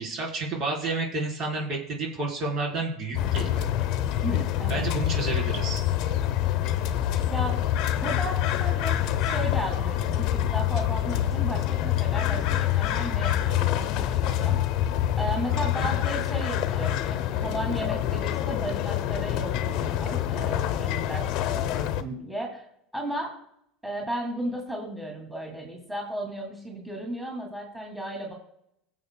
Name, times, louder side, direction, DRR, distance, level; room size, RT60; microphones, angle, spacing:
voice 1, 0.0-3.7 4.7-5.8 15.6-15.9, right 3 dB, 50° right, -1 dB, 3.8 m, -30 dB
sound 1, 3.1-22.0, left 11 dB, 60° left, 0.7 m, -26 dB
voice 2, 4.2-4.9 7.2-7.6 8.0-14.6 15.2-22.6 22.9-23.3 23.8-28.3, right 1 dB, 5° right, -1 dB, 2.4 m, -35 dB
18.5 x 7.4 x 2.2 m, 0.75 s
hypercardioid pair, 90°, 0 cm